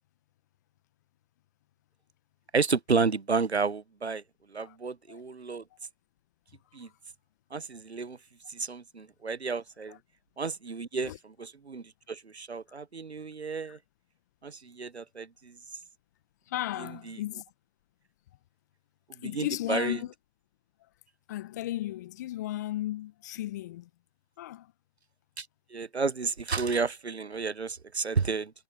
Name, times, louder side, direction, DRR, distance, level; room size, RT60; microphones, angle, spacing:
voice 1, 2.5-4.2 4.5-5.6 6.7-6.9 7.5-8.2 8.5-10.0 10.4-11.1 11.4-13.8 14.4-15.6 16.8-17.2 19.2-20.0 25.4-25.5 25.7-28.5, right 4 dB, 80° right, 1.0 m, -31 dB
voice 2, 16.5-17.4 19.2-20.1 21.3-23.9 24.4-24.7, left 14 dB, 15° left, 1.3 m, -35 dB
figure-of-eight pair, 150°, 32 cm